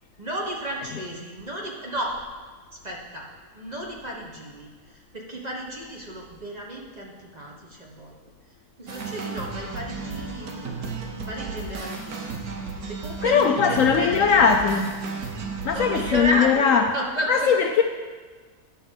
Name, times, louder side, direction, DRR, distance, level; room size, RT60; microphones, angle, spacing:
voice 1, 0.2-2.1 2.7-3.2 3.5-8.1 8.8-11.0 11.3-12.4 12.9-14.7 15.7-17.3, equal, 30° right, -2 dB, 1.2 m, -33 dB
sound 1, 8.9-16.2, right 4 dB, 70° right, 1.5 m, -34 dB
voice 2, 13.2-14.9 15.6-16.9 17.3-17.8, left 6 dB, 70° left, 5 dB, 0.8 m, -20 dB
10.0 x 5.6 x 6.4 m, 1.5 s
omnidirectional pair, 1.7 m